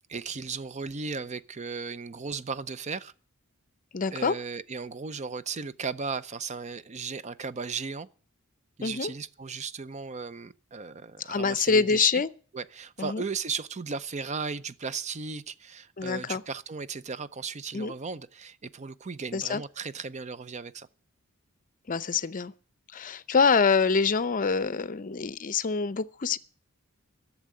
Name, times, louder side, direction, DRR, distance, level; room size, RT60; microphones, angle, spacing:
voice 1, 0.1-3.1 4.1-8.1 8.8-12.2 12.5-20.9, right 5 dB, 35° right, 0.5 m, -36 dB
voice 2, 3.9-4.3 8.8-9.1 11.2-12.3 13.0-13.2 16.0-16.4 17.7-17.9 19.3-19.6 21.9-22.5 22.9-26.4, left 5 dB, 40° left, 0.6 m, -25 dB
11.5 x 7.3 x 9.5 m
head